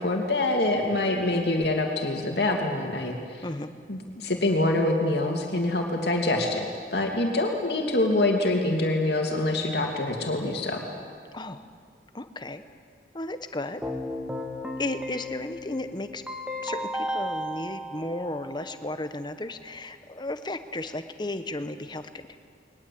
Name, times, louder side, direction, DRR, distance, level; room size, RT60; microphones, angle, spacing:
voice 1, 0.0-3.4 3.9-6.6 6.9-10.9, left 2 dB, 65° left, 1 dB, 2.7 m, -25 dB
voice 2, 11.3-11.6 12.1-12.6 13.1-13.8 14.8-16.2 16.6-22.4, left 2 dB, 25° left, 9 dB, 1.1 m, -34 dB
Keyboard (musical), 13.8-18.8, equal, 5° right, 1.7 m, -34 dB
22.0 x 19.5 x 8.6 m, 2.1 s
head